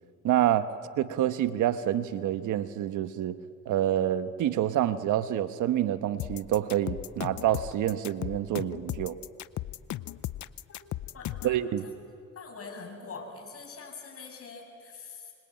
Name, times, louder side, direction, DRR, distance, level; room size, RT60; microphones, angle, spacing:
voice 1, 0.2-0.7 1.0-3.4 3.7-9.2 11.4-11.8, right 11 dB, 80° right, 11 dB, 1.2 m, -27 dB
sound 1, 6.2-11.6, left 14 dB, 70° left, 0.8 m, -36 dB
voice 2, 11.1-11.6 11.8-11.9 12.4-15.3, left 4 dB, 50° left, 3 dB, 7.0 m, -44 dB
26.0 x 25.5 x 8.9 m, 2.3 s
cardioid pair, 90°, 30 cm